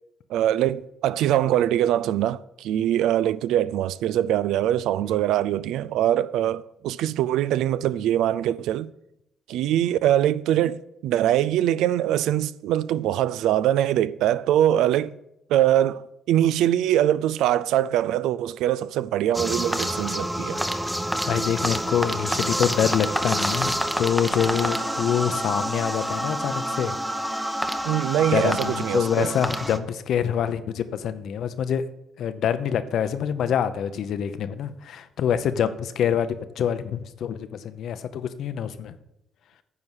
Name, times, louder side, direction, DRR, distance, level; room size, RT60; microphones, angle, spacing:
voice 1, 0.3-8.9 9.5-15.2 15.5-20.6 27.8-29.3, right 12 dB, 90° right, 0.3 m, -23 dB
sound 1, 19.3-29.8, equal, 5° right, 0.7 m, -28 dB
voice 2, 21.3-26.9 27.4-27.6 28.3-31.8 32.2-38.9, left 8 dB, 75° left, 0.7 m, -26 dB
9.6 x 4.7 x 7.3 m
cardioid pair, 90°, 0 cm